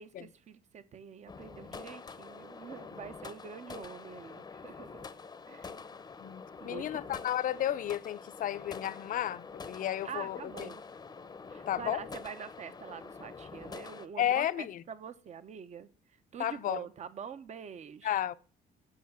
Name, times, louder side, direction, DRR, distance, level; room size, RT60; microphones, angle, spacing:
voice 1, 0.0-5.1 5.5-5.7 6.6-7.2 10.0-10.8 11.5-15.9 16.3-18.1, right 7 dB, 45° right, 1.0 m, -45 dB
sound 1, 1.3-14.1, left 4 dB, 25° left, 0.8 m, -46 dB
voice 2, 6.2-10.7 11.7-12.1 14.2-14.8 16.4-16.8 18.0-18.3, left 11 dB, 55° left, 0.7 m, -33 dB
8.6 x 6.5 x 7.2 m
cardioid pair, 110°, 17 cm